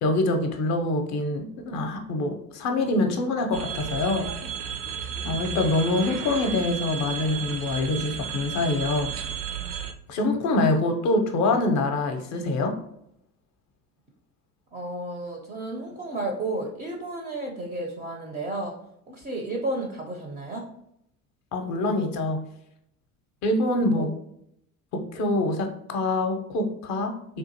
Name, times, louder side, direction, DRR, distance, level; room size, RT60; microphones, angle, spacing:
voice 1, 0.0-4.3 5.2-9.1 10.1-12.8 21.5-22.4 23.4-24.1 24.9-27.4, left 2 dB, 40° left, 5 dB, 0.6 m, -25 dB
sound 1, 3.5-9.9, right 7 dB, 70° right, 0.5 m, -33 dB
voice 2, 14.7-18.7 19.1-20.7 24.0-24.1, right 2 dB, 20° right, 1 dB, 0.4 m, -32 dB
3.6 x 2.5 x 2.7 m, 0.75 s
figure-of-eight pair, 65°, 47 cm